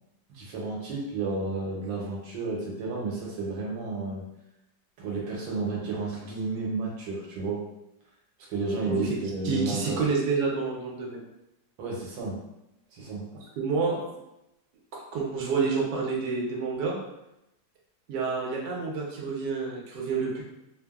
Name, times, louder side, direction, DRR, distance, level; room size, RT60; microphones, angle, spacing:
voice 1, 0.3-4.2 5.0-7.7 8.5-10.0 11.8-12.4 12.9-13.2, right 3 dB, 90° right, -3 dB, 1.4 m, -32 dB
voice 2, 9.4-11.2 13.6-14.0 14.9-17.0 18.1-20.4, right 4 dB, 75° right, -2 dB, 1.2 m, -28 dB
3.3 x 2.0 x 2.2 m, 0.87 s
omnidirectional pair, 2.0 m